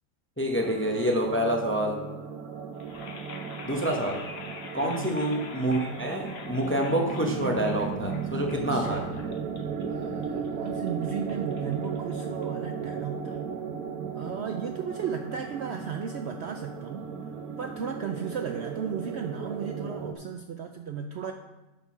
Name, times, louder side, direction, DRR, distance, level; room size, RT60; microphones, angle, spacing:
voice 1, 0.4-2.0 3.6-4.2 4.7-9.1, right 1 dB, 10° left, 1 dB, 0.6 m, -27 dB
sound 1, 0.5-20.1, right 6 dB, 90° right, 1.2 m, -36 dB
sound 2, 2.7-12.8, left 4 dB, 50° left, 1.0 m, -46 dB
voice 2, 4.8-5.2 8.7-9.1 9.9-13.4 14.1-17.1 17.6-21.3, right 7 dB, 65° right, 5 dB, 0.7 m, -35 dB
8.8 x 4.5 x 5.8 m, 1.0 s
omnidirectional pair, 1.5 m